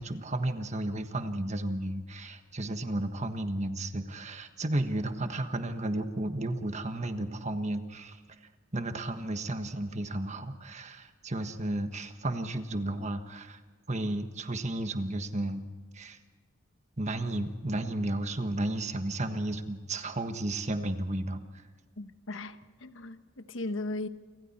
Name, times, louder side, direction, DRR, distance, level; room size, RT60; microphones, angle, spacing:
voice 1, 0.0-8.2 8.7-13.6 13.9-15.7 15.9-16.2 17.0-21.4, right 1 dB, 35° right, 1.4 m, -33 dB
voice 2, 22.0-24.1, left 2 dB, 75° left, 1.2 m, -37 dB
29.0 x 25.0 x 4.4 m
head